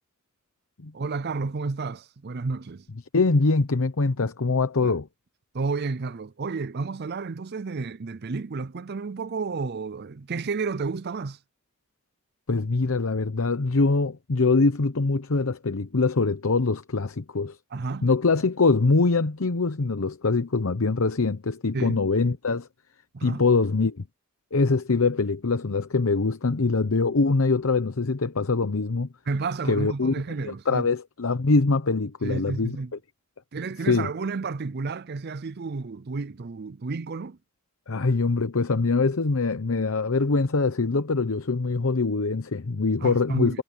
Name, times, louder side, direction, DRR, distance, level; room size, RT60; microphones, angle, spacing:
voice 1, 0.9-2.9 4.8-4.9 5.5-11.4 17.7-18.1 21.7-22.0 23.1-23.4 29.3-30.9 32.2-32.9 33.5-37.4 43.0-43.6, right 4 dB, 50° right, 0.5 m, -31 dB
voice 2, 3.1-5.1 12.5-17.6 18.0-22.7 23.2-24.0 24.5-29.1 29.6-30.1 30.4-32.8 33.9-34.1 37.9-43.6, left 3 dB, 75° left, 0.8 m, -23 dB
head